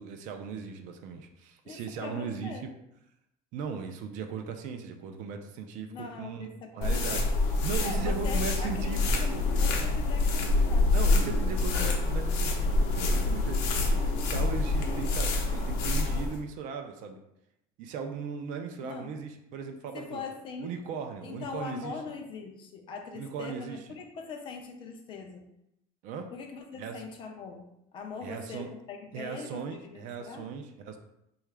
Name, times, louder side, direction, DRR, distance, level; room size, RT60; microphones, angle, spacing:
voice 1, 0.0-2.7 3.5-7.2 7.6-9.4 10.8-17.2 17.8-20.2 20.6-21.9 23.1-23.8 26.0-26.3 26.8-27.0 28.2-28.7 29.1-31.0, right 6 dB, 50° right, 6 dB, 0.4 m, -38 dB
voice 2, 1.6-2.7 5.9-7.0 7.8-10.9 18.8-19.1 19.9-20.8 21.2-25.5 26.3-30.5, left 4 dB, 30° left, 4 dB, 0.3 m, -42 dB
sound 1, 6.8-16.4, left 2 dB, 75° left, 0.6 m, -26 dB
3.7 x 2.3 x 3.2 m, 0.80 s
cardioid pair, 180°, 16 cm